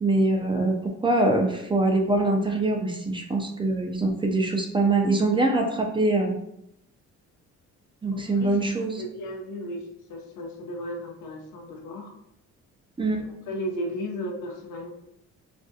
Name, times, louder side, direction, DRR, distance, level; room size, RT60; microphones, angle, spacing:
voice 1, 0.0-0.7 1.0-6.3 8.0-9.0 13.0-13.2, right 2 dB, 15° right, 2 dB, 0.3 m, -23 dB
voice 2, 8.1-8.6 9.0-9.8 10.1-12.1 13.5-14.9, equal, 85° left, 1 dB, 0.6 m, -34 dB
2.4 x 2.2 x 2.6 m, 0.79 s
cardioid pair, 90°, 30 cm